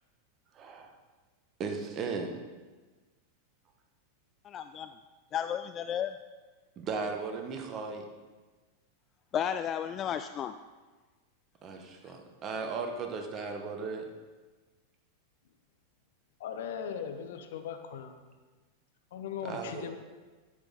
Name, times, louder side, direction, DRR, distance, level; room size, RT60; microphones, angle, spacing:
voice 1, 0.5-0.9 1.6-2.4 6.8-8.1 11.6-14.1 19.4-19.9, right 4 dB, 30° right, 3 dB, 1.3 m, -36 dB
voice 2, 4.5-4.9 5.3-6.1 9.3-10.5, left 9 dB, 30° left, 10 dB, 0.3 m, -33 dB
voice 3, 16.4-18.2 19.1-20.0, left 7 dB, 55° left, 7 dB, 0.9 m, -38 dB
12.0 x 7.9 x 3.9 m, 1.3 s
figure-of-eight pair, 90°, 0 cm